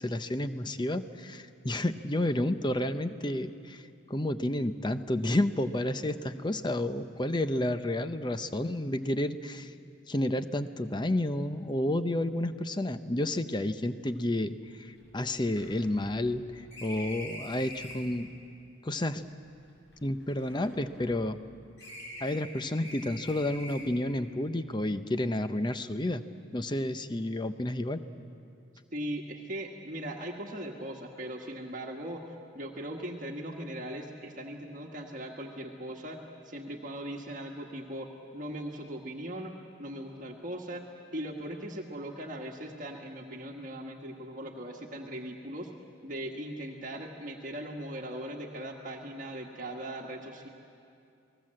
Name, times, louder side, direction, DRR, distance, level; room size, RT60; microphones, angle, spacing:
voice 1, 0.0-9.7 10.1-18.3 18.8-19.3 20.0-21.4 22.2-26.2 26.5-28.0, left 1 dB, 25° left, 10 dB, 0.7 m, -31 dB
sound 1, 14.1-14.2 14.4-14.5 14.9-18.2 19.0-21.4 21.8-24.1, left 1 dB, 65° left, 6.7 m, -46 dB
voice 2, 28.9-39.5 39.8-40.8 41.1-45.7 46.0-50.5, right 1 dB, 40° right, 1 dB, 1.5 m, -39 dB
29.0 x 19.5 x 7.7 m, 2.6 s
head